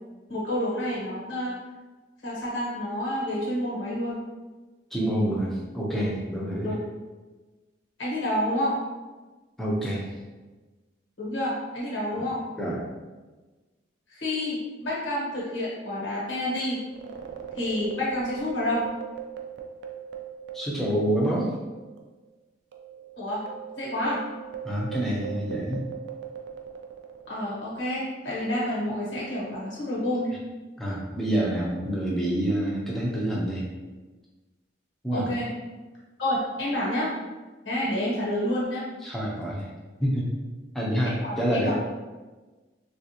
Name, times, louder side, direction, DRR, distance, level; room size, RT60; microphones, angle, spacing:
voice 1, 0.3-1.6 2.2-4.2 6.6-6.8 8.0-8.8 11.2-12.4 14.1-16.8 17.5-18.8 23.2-23.4 23.8-24.2 27.3-30.3 35.1-35.5 36.2-37.1 37.6-38.8 41.0-41.7, left 1 dB, 85° left, -7 dB, 1.2 m, -29 dB
voice 2, 4.9-6.7 9.6-10.1 12.1-12.3 12.6-12.8 20.5-21.5 24.6-25.8 30.8-33.6 35.0-35.3 39.0-39.7 40.0-40.3 40.7-41.7, right 1 dB, ahead, -6 dB, 0.6 m, -27 dB
sound 1, 16.9-21.7 22.0-22.1 22.7-27.5, right 8 dB, 65° right, 0.4 m, -39 dB
3.5 x 2.5 x 2.8 m, 1.2 s
head